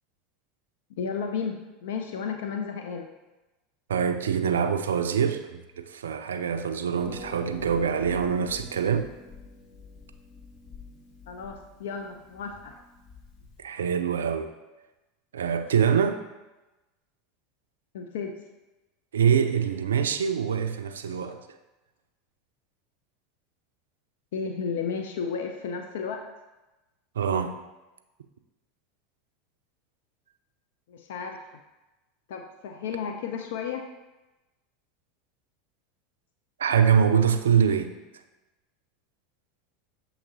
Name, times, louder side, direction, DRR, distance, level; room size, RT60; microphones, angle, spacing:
voice 1, 1.0-3.1 11.3-12.7 17.9-18.3 21.1-21.3 24.3-26.2 30.9-31.5 32.3-33.8, left 6 dB, 70° left, 4 dB, 0.3 m, -33 dB
voice 2, 3.9-9.1 13.6-14.5 15.3-16.2 19.1-21.4 27.2-27.6 36.6-37.9, right 7 dB, 80° right, 8 dB, 0.3 m, -24 dB
Harp, 7.0-13.7, left 3 dB, 50° left, 0.9 m, -47 dB
7.0 x 2.9 x 2.6 m, 1.1 s
hypercardioid pair, 80°, 0 cm